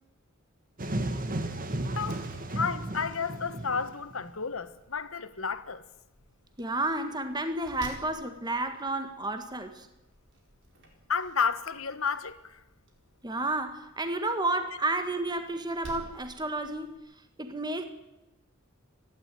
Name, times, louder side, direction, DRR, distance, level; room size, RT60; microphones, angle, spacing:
sound 1, 0.8-4.3, right 1 dB, 45° right, 1.9 m, -34 dB
Slam, 1.9-17.0, right 1 dB, 60° right, 4.6 m, -53 dB
voice 1, 2.5-5.8 11.1-12.6, left 5 dB, 70° left, 1.3 m, -31 dB
voice 2, 6.6-9.9 13.2-16.9 17.4-17.8, right 2 dB, 20° right, 1.7 m, -31 dB
29.0 x 12.0 x 9.4 m
head